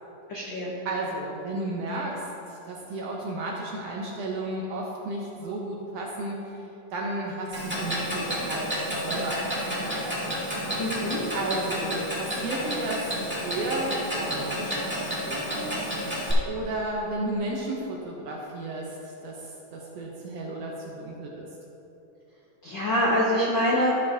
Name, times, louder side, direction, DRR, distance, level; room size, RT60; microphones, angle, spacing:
voice 1, 0.3-0.7 10.8-11.2 22.6-23.9, equal, 80° left, -4 dB, 1.0 m, -25 dB
voice 2, 0.8-6.6 6.9-8.7 9.0-10.5 11.3-15.9 16.4-21.5, right 2 dB, 70° right, -2 dB, 1.6 m, -33 dB
Clock, 7.5-16.3, equal, 5° right, 1.0 m, -31 dB
14.0 x 7.2 x 2.8 m, 3.0 s
omnidirectional pair, 3.7 m